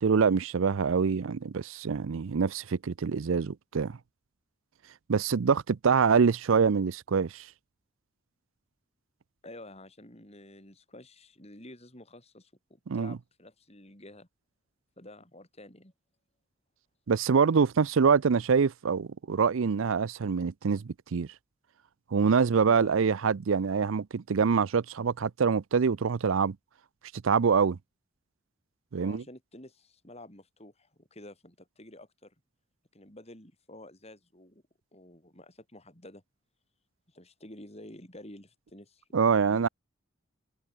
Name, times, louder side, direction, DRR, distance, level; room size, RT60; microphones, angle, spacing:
voice 1, 0.0-4.0 5.1-7.5 12.9-13.2 17.1-21.3 22.1-26.6 27.2-27.8 28.9-29.2 39.1-39.7, right 5 dB, 70° right, 0.5 m, -25 dB
voice 2, 9.4-14.3 15.0-15.9 22.7-23.1 29.0-32.3 32.9-34.6 34.9-36.2 37.1-39.0 39.4-39.7, left 1 dB, 30° left, 5.8 m, -50 dB
head